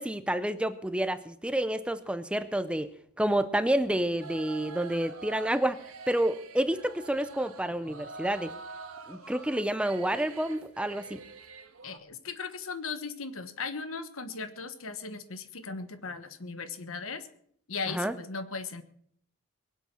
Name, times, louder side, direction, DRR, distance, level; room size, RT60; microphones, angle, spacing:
voice 1, 0.0-2.9 3.2-5.8 6.1-8.5 9.1-11.2 17.9-18.1, right 1 dB, 5° right, 13 dB, 0.5 m, -29 dB
sound 1, 4.2-12.0, right 4 dB, 90° right, 1.5 m, -46 dB
voice 2, 11.8-17.3 17.7-18.8, left 4 dB, 70° left, 11 dB, 1.3 m, -37 dB
22.0 x 8.2 x 6.2 m, 0.66 s
head